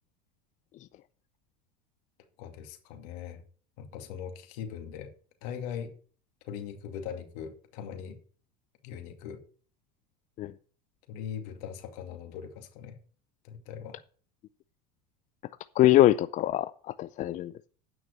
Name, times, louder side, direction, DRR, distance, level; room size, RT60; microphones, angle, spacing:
voice 1, 2.4-3.4 3.8-5.1 5.4-5.9 6.4-8.2 8.8-9.4 11.1-13.0 13.4-14.0, left 8 dB, 70° left, 2.4 m, -40 dB
voice 2, 15.8-17.7, left 14 dB, 40° left, 0.4 m, -23 dB
9.1 x 6.2 x 6.7 m
supercardioid pair, 105°, 20 cm